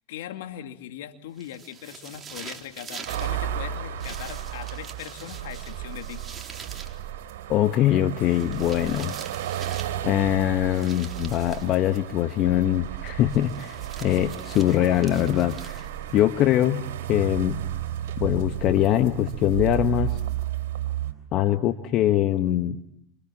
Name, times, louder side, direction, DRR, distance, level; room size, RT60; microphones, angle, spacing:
voice 1, 0.1-6.2, left 11 dB, 70° left, 6 dB, 2.5 m, -39 dB
sound 1, 1.4-3.3 4.0-7.0 8.2-10.0 10.7-11.7 13.3-16.1, right 6 dB, 25° right, 3.8 m, -44 dB
sound 2, 2.5-20.4, right 12 dB, 55° right, 3.4 m, -42 dB
sound 3, 3.1-21.1, right 11 dB, 75° right, 3.4 m, -34 dB
voice 2, 7.5-9.1 10.0-15.9 16.1-17.6 18.2-20.2 21.3-22.8, left 12 dB, 50° left, 9 dB, 1.4 m, -23 dB
28.5 x 26.5 x 7.4 m, 0.72 s
hypercardioid pair, 90°, 0 cm